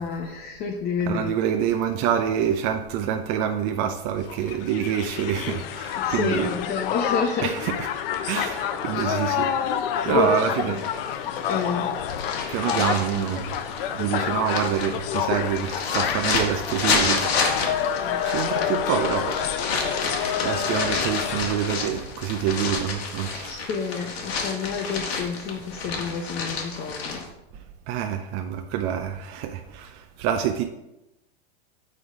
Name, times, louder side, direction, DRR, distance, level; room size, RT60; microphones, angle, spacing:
voice 1, 0.0-1.3 6.0-7.5 8.9-9.1 10.1-10.8 11.5-11.9 18.0-18.2 23.5-27.3, left 5 dB, 30° left, 0.8 m, -29 dB
voice 2, 1.1-6.5 7.4-7.9 8.2-9.6 10.0-10.9 12.5-13.6 13.9-17.8 18.1-19.5 19.9-23.6 27.5-30.6, right 9 dB, 45° right, 0.6 m, -27 dB
Crowd, 4.3-21.7, left 9 dB, 65° left, 0.7 m, -28 dB
sound 1, 10.8-27.3, left 4 dB, 80° left, 1.6 m, -30 dB
6.5 x 3.9 x 4.9 m
supercardioid pair, 125°, 31 cm